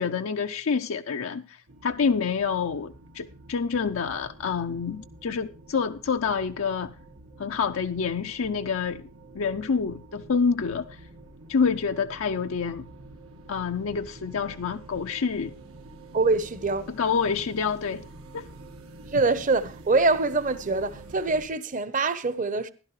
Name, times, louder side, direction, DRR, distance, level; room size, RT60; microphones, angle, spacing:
voice 1, 0.0-6.9 7.4-9.1 9.3-11.0 11.5-12.9 13.5-15.5 17.0-18.1 18.3-18.5, left 5 dB, 70° left, 0.5 m, -27 dB
sound 1, 1.7-21.5, right 2 dB, 90° right, 1.9 m, -47 dB
voice 2, 16.1-16.9 19.1-22.7, right 3 dB, 35° right, 0.8 m, -24 dB
15.0 x 11.5 x 3.2 m
head